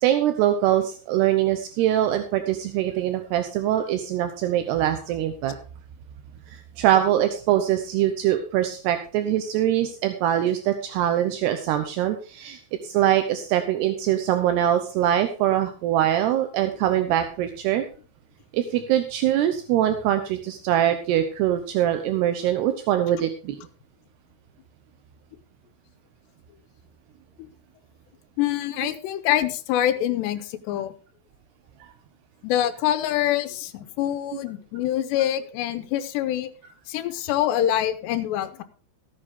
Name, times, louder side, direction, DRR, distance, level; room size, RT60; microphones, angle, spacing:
voice 1, 0.0-5.6 6.5-17.8 18.5-23.6 31.8-31.9 34.3-34.4, right 11 dB, 80° right, 8 dB, 2.9 m, -23 dB
voice 2, 28.4-30.9 32.4-36.5 36.9-38.6, left 12 dB, 85° left, 10 dB, 3.1 m, -25 dB
15.0 x 9.0 x 3.7 m, 0.38 s
omnidirectional pair, 4.9 m